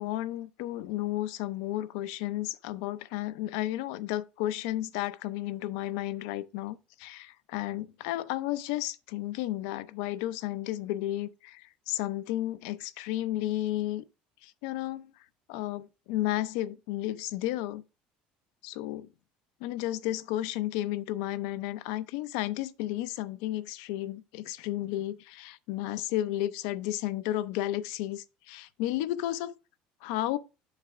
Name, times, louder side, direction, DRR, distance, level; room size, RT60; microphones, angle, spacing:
voice 1, 0.0-14.0 14.4-15.1 15.5-17.8 18.6-19.1 19.6-29.6 30.0-30.4, left 14 dB, 85° left, 0.5 m, -33 dB
7.3 x 5.8 x 3.5 m
cardioid pair, 145°, 3 cm